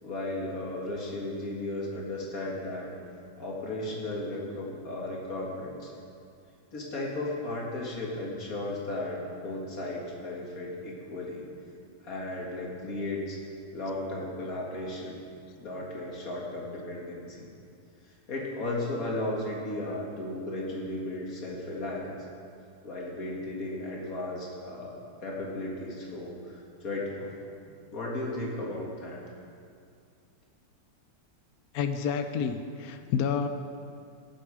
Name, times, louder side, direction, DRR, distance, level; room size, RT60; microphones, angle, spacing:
voice 1, 0.0-2.9 3.4-5.9 6.7-11.5 12.0-13.4 13.7-15.2 15.6-17.5 18.3-22.1 22.8-27.3 27.9-29.2, left 2 dB, 45° left, -3 dB, 2.3 m, -35 dB
voice 2, 31.7-33.5, left 7 dB, 80° left, 8 dB, 0.8 m, -29 dB
19.0 x 7.1 x 4.9 m, 2.4 s
omnidirectional pair, 2.2 m